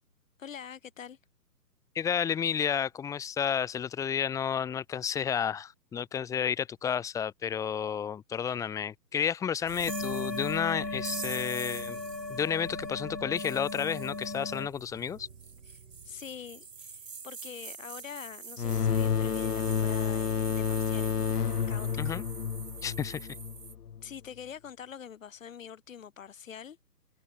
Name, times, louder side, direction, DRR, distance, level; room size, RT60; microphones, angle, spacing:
voice 1, 0.4-1.2 16.0-21.4 21.7-22.2 24.0-26.8, left 8 dB, 50° left, 6.5 m, -45 dB
voice 2, 1.9-12.0 12.3-15.3 22.0-22.2 22.8-23.3, left 8 dB, 5° left, 1.4 m, -31 dB
sound 1, 9.7-23.7, right 5 dB, 70° right, 2.4 m, -45 dB
sound 2, 9.9-14.7, left 3 dB, 90° left, 4.1 m, -37 dB
sound 3, 18.6-24.0, left 7 dB, 65° left, 1.3 m, -30 dB
figure-of-eight pair, 140°, 49 cm